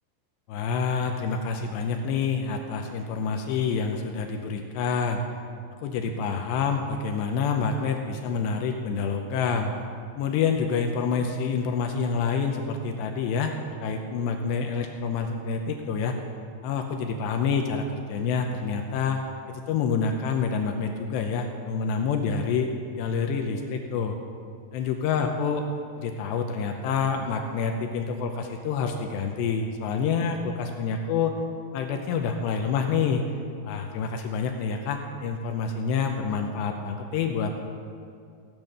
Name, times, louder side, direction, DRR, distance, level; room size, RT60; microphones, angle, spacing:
voice 1, 0.5-5.2 5.8-9.7 10.2-16.2 16.6-19.2 19.5-22.7 23.0-24.2 24.7-25.7 26.0-31.4 31.7-33.3 33.7-37.6, left 5 dB, 75° left, 4 dB, 2.8 m, -27 dB
15.5 x 9.0 x 6.6 m, 2.3 s
omnidirectional pair, 5.3 m